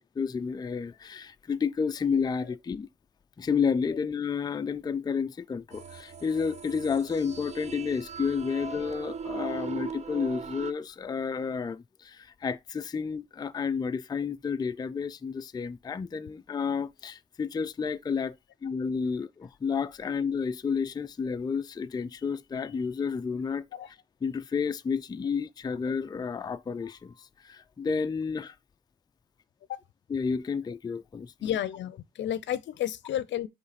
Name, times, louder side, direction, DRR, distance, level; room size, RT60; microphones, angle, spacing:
voice 1, 0.2-2.9 3.4-18.4 18.6-23.6 24.2-28.6 30.1-31.5, left 6 dB, 20° left, 0.4 m, -31 dB
sound 1, 5.7-10.7, right 6 dB, 35° right, 0.7 m, -39 dB
voice 2, 31.4-33.5, left 11 dB, 70° left, 0.6 m, -31 dB
8.0 x 3.2 x 4.2 m
cardioid pair, 90°, 20 cm